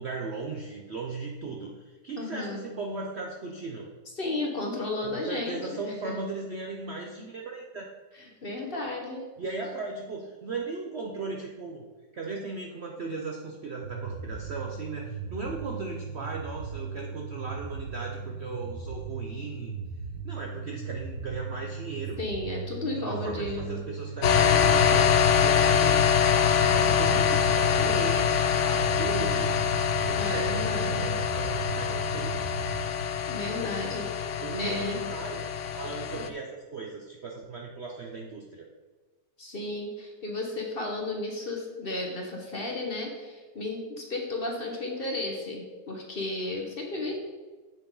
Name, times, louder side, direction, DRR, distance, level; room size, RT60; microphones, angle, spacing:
voice 1, 0.0-3.9 5.0-7.9 9.4-11.9 12.1-19.8 20.2-22.2 22.9-25.1 25.4-26.1 26.6-29.6 30.0-32.3 34.4-35.5 35.7-38.7, right 3 dB, 55° right, 1 dB, 0.7 m, -37 dB
voice 2, 2.2-2.6 4.2-6.1 8.2-9.2 22.2-23.8 30.1-31.2 33.3-35.1 36.2-36.3 39.4-47.1, left 2 dB, 35° left, 0 dB, 1.2 m, -34 dB
sound 1, 13.8-32.9, right 5 dB, 75° right, 1.7 m, -38 dB
sound 2, 24.2-36.3, left 8 dB, 75° left, 0.6 m, -24 dB
7.6 x 7.3 x 3.9 m, 1.3 s
omnidirectional pair, 1.9 m